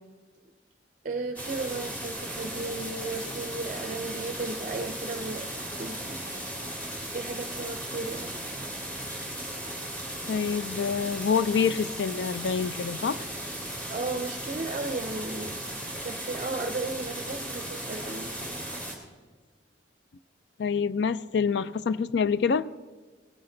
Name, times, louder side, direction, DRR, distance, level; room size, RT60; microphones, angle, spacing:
voice 1, 1.0-6.5 7.1-8.3 13.9-15.6 15.9-18.6, right 3 dB, 45° right, 7 dB, 0.5 m, -35 dB
sound 1, 1.4-19.0, right 1 dB, 10° left, 1.9 m, -36 dB
voice 2, 10.3-13.3 20.6-22.7, left 6 dB, 65° left, 16 dB, 0.4 m, -26 dB
17.5 x 10.0 x 3.8 m, 1.4 s
head